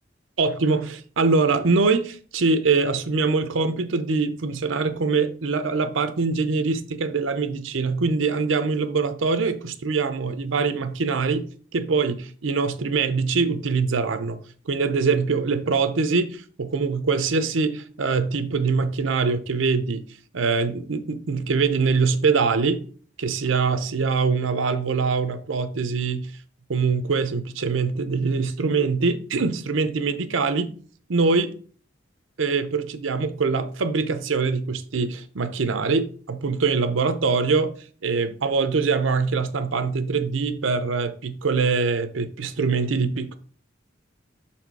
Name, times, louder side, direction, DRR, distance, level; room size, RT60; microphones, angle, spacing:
voice 1, 0.4-11.5 11.7-14.4 14.7-20.0 20.3-22.8 23.2-26.3 26.7-30.7 31.1-31.5 32.4-37.7 38.0-43.4, right 4 dB, 85° right, 0.7 m, -23 dB
6.0 x 4.3 x 4.6 m
head